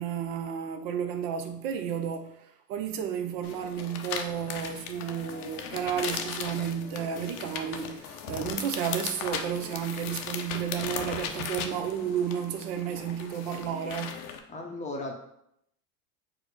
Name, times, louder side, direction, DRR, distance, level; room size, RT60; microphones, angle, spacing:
voice 1, 0.0-14.2, right 8 dB, 55° right, 0.6 m, -32 dB
sound 1, 3.4-14.4, left 7 dB, 70° left, 0.7 m, -37 dB
voice 2, 14.5-15.1, left 2 dB, 15° left, 0.6 m, -35 dB
4.8 x 2.0 x 4.7 m
hypercardioid pair, 110°, 47 cm